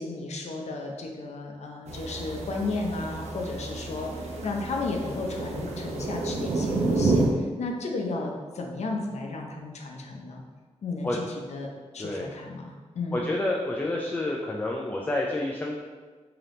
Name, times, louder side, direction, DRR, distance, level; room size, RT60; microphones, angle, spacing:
voice 1, 0.0-4.1 4.4-7.2 7.6-10.4 10.8-11.2 11.5-13.2, left 3 dB, 75° left, 1 dB, 0.6 m, -33 dB
sound 1, 1.9-7.3, right 3 dB, 75° right, 0.6 m, -29 dB
voice 2, 12.0-12.3 13.1-15.8, left 1 dB, 15° left, -1 dB, 0.3 m, -29 dB
3.4 x 2.8 x 3.7 m, 1.4 s
wide cardioid pair, 115°, 12 cm